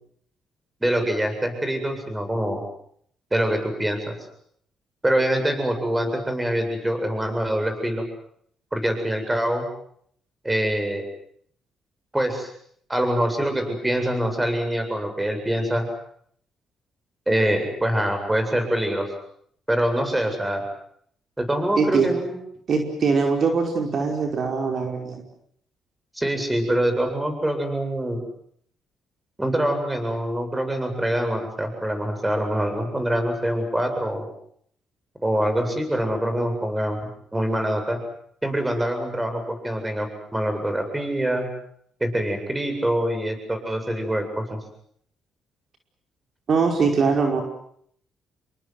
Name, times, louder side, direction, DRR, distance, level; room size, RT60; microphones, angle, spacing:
voice 1, 0.8-2.6 3.3-4.2 5.0-8.0 8.7-9.7 10.4-11.0 12.1-12.5 12.9-15.8 17.3-19.1 19.7-20.6 21.4-22.4 26.1-28.2 29.4-34.3 35.2-38.0 38.4-41.5 42.0-44.6, right 1 dB, 10° right, 7 dB, 8.0 m, -24 dB
voice 2, 21.8-22.1 22.7-25.2 46.5-47.4, right 5 dB, 55° right, 3 dB, 5.1 m, -22 dB
29.0 x 23.0 x 7.8 m, 0.65 s
cardioid pair, 90°, 0 cm